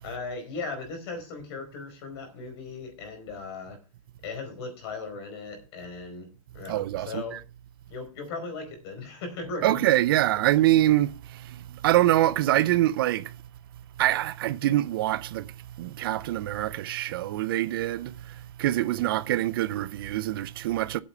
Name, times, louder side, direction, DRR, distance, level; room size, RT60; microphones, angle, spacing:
voice 1, 0.0-3.8 4.2-7.4 7.9-9.8, left 4 dB, 45° left, 4.8 m, -37 dB
voice 2, 6.7-7.4 9.6-13.4 14.0-15.5 15.8-21.0, right 14 dB, 40° right, 0.5 m, -25 dB
8.4 x 7.1 x 8.1 m
hypercardioid pair, 160°, 18 cm